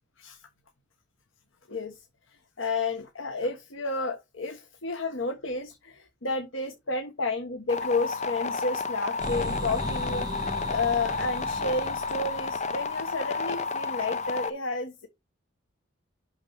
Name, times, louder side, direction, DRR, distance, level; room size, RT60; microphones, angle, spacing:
voice 1, 1.7-2.0 2.6-15.1, left 3 dB, 85° left, 1.2 m, -31 dB
sound 1, 7.7-14.5, left 4 dB, 35° left, 0.6 m, -31 dB
sound 2, 9.2-13.0, equal, 20° right, 1.8 m, -37 dB
6.1 x 6.0 x 5.7 m
head